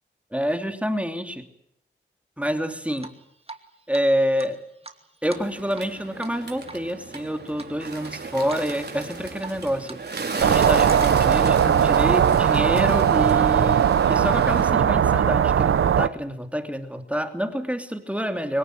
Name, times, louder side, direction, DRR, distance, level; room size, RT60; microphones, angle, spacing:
voice 1, 0.3-1.4 2.4-3.1 3.9-4.6 5.2-18.6, equal, 5° right, 6 dB, 2.9 m, -27 dB
Drip, 3.0-3.6 3.9-4.0 4.4-5.9 6.2-6.4 6.7-7.2 7.6-8.1 8.5-8.7 9.0-10.0 10.3-11.4, right 3 dB, 30° right, 2.7 m, -41 dB
Bird, 5.3-14.7, right 4 dB, 55° right, 4.9 m, -34 dB
sound 1, 10.4-16.1, right 8 dB, 85° right, 0.9 m, -19 dB
25.0 x 17.5 x 9.3 m, 0.75 s
cardioid pair, 65°, 21 cm